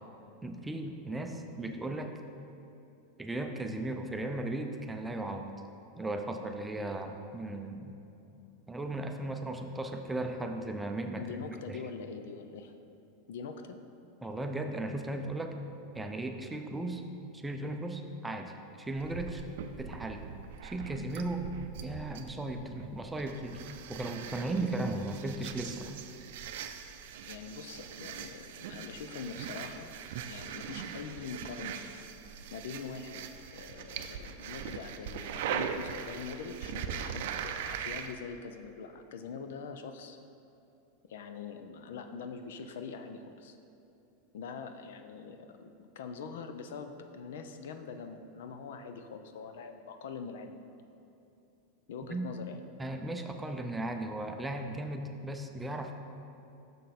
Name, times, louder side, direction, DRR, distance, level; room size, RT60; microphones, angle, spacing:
voice 1, 0.4-2.2 3.2-5.5 6.0-8.0 8.7-11.3 11.7-11.8 14.2-15.5 15.9-17.0 17.3-19.4 19.8-20.3 20.6-21.5 21.8-23.6 23.9-25.9 52.1-52.3 52.8-55.9, right 2 dB, 10° right, 5 dB, 0.5 m, -36 dB
voice 2, 11.1-12.7 13.3-13.8 27.2-31.8 32.5-40.2 41.1-43.6 44.3-50.7 51.9-52.6, left 5 dB, 80° left, 7 dB, 0.5 m, -43 dB
sound 1, 19.0-38.1, right 8 dB, 70° right, 0.4 m, -41 dB
6.7 x 6.3 x 4.2 m, 2.8 s
supercardioid pair, 130°, 0 cm